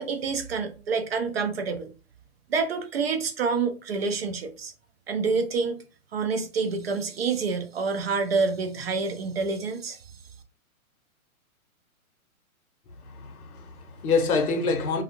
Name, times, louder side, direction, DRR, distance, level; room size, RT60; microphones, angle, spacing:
voice 1, 0.0-1.9 2.5-4.7 5.1-5.8 6.1-10.0, right 4 dB, 45° right, 0.4 m, -27 dB
voice 2, 13.0-15.0, left 4 dB, 90° left, 0.9 m, -26 dB
2.5 x 2.3 x 2.8 m
hypercardioid pair, 160°, 43 cm